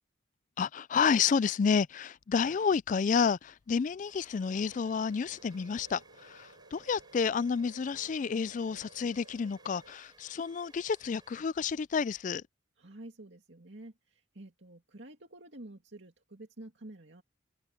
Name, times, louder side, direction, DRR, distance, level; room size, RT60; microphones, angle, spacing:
voice 1, 0.6-12.4, left 6 dB, 40° left, 0.3 m, -30 dB
sound 1, 3.2-11.9, right 3 dB, 20° right, 7.2 m, -61 dB
sound 2, 4.4-9.9, right 2 dB, 85° right, 5.6 m, -58 dB
voice 2, 12.8-17.2, right 1 dB, 65° right, 2.5 m, -49 dB
head